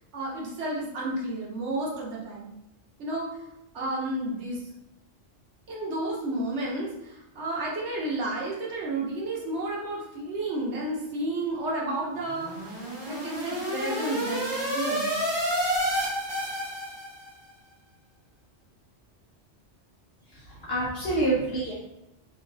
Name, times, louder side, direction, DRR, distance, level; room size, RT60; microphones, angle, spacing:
voice 1, 0.1-2.5 3.0-3.3 3.7-4.6 5.7-15.2, right 1 dB, 70° right, -4 dB, 1.0 m, -31 dB
sound 1, 12.3-17.3, equal, 30° right, 0.5 m, -30 dB
voice 2, 20.3-21.7, right 2 dB, 60° left, -6 dB, 1.0 m, -27 dB
3.1 x 2.6 x 2.6 m, 0.85 s
omnidirectional pair, 1.2 m